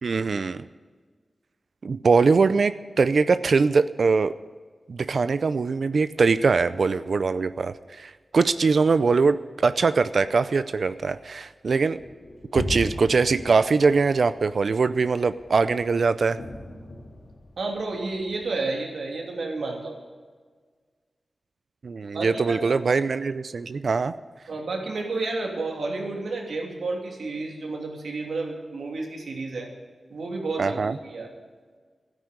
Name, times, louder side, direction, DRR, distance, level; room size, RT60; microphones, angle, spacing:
voice 1, 0.0-0.6 1.8-4.3 4.9-12.0 12.5-16.4 21.8-24.1 30.6-31.0, right 4 dB, 70° right, 13 dB, 0.5 m, -22 dB
sound 1, 12.0-18.5, left 2 dB, 80° left, 2.3 m, -37 dB
voice 2, 17.6-20.0 22.1-22.6 24.5-29.7 30.1-31.3, right 3 dB, 90° right, 0 dB, 2.9 m, -31 dB
13.0 x 9.9 x 8.0 m, 1.5 s
wide cardioid pair, 65°, 0 cm